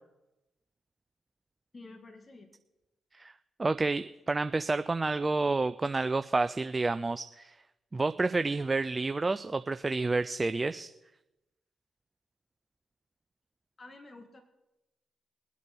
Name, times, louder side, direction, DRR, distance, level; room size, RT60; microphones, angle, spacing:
voice 1, 1.7-2.5 13.8-14.4, left 2 dB, 40° left, 5 dB, 2.0 m, -50 dB
voice 2, 3.6-7.5 7.9-10.9, right 3 dB, 30° right, 12 dB, 0.5 m, -29 dB
22.5 x 8.4 x 4.5 m, 0.98 s
supercardioid pair, 50°, 0 cm